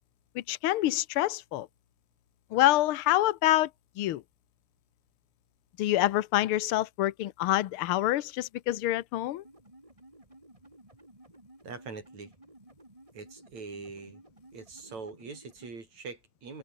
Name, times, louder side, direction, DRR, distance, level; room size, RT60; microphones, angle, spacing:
voice 1, 0.3-1.7 2.5-3.7 4.0-4.2 5.8-9.4, left 15 dB, 80° left, 1.2 m, -26 dB
sound 1, 9.4-15.8, right 1 dB, 10° right, 4.3 m, -55 dB
voice 2, 11.6-12.3 13.1-14.2 14.5-16.6, right 4 dB, 60° right, 6.7 m, -43 dB
omnidirectional pair, 3.5 m